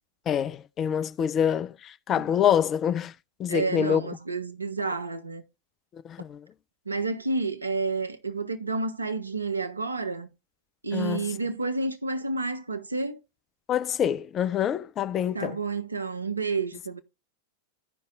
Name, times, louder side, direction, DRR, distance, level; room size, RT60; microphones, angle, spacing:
voice 1, 0.3-3.1 3.4-4.0 5.9-6.4 10.9-11.3 13.7-15.6, left 9 dB, 30° left, 0.4 m, -26 dB
voice 2, 3.5-5.4 6.9-10.3 10.8-13.2 15.3-17.0, right 3 dB, 80° right, 0.8 m, -30 dB
14.5 x 5.3 x 2.3 m
figure-of-eight pair, 90°, 0 cm